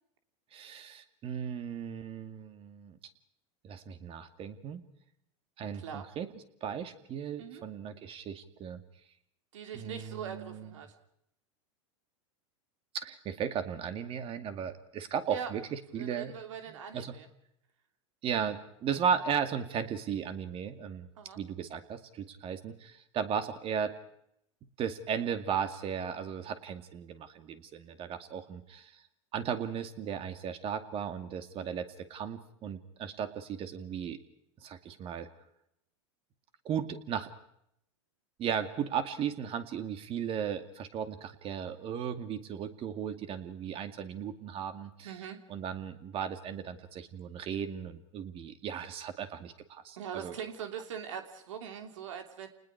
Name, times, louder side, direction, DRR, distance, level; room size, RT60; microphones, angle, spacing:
voice 1, 0.5-3.0 3.6-4.8 5.6-6.3 6.6-8.8 9.7-10.7 12.9-16.3 16.7-17.1 18.2-21.1 21.4-23.9 24.8-29.0 29.3-34.2 34.6-35.3 36.6-37.3 38.4-45.1 45.5-50.4, right 8 dB, 35° right, 8 dB, 2.3 m, -36 dB
voice 2, 5.7-6.1 7.4-7.6 9.5-10.9 15.3-15.5 16.0-17.3 21.2-21.4 45.0-45.4 50.0-52.5, right 8 dB, 85° right, 5 dB, 3.1 m, -42 dB
29.5 x 20.0 x 4.8 m, 0.74 s
supercardioid pair, 120°, 16 cm